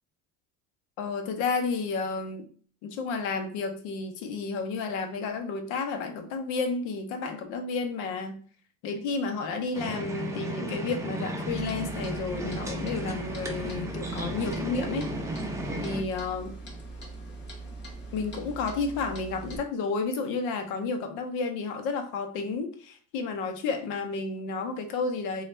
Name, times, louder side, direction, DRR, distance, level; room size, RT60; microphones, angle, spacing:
voice 1, 1.0-2.4 2.8-8.4 8.8-15.1 15.8-16.5 18.1-25.4, left 4 dB, 85° left, 6 dB, 0.8 m, -31 dB
sound 1, 9.7-16.0, right 1 dB, 10° right, 0.5 m, -34 dB
Clock, 11.5-19.6, right 2 dB, 35° left, 1.0 m, -42 dB
3.2 x 2.4 x 4.2 m, 0.43 s
cardioid pair, 140°, 30 cm